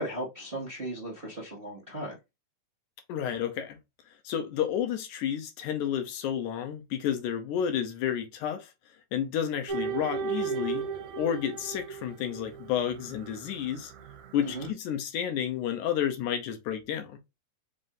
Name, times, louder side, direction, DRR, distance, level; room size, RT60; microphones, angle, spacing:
voice 1, 0.0-2.1 14.4-14.7, right 1 dB, 30° right, 1.0 m, -36 dB
voice 2, 3.1-3.8 4.2-8.7 9.1-10.9 11.2-13.9 14.3-17.2, left 9 dB, 85° left, 2.2 m, -31 dB
sound 1, 9.7-12.6 12.9-13.5, right 6 dB, 75° right, 2.1 m, -34 dB
5.4 x 2.6 x 3.7 m
omnidirectional pair, 3.5 m